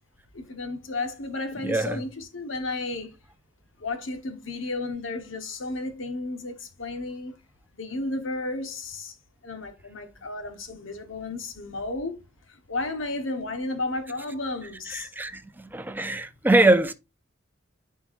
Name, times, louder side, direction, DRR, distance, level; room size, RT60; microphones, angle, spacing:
voice 1, 0.3-3.1 3.8-7.3 7.7-9.1 9.4-12.2 12.5-15.1, left 2 dB, 90° left, 1.3 m, -33 dB
voice 2, 1.6-2.0 14.9-16.9, right 2 dB, 10° right, 0.5 m, -23 dB
9.7 x 4.6 x 2.5 m
head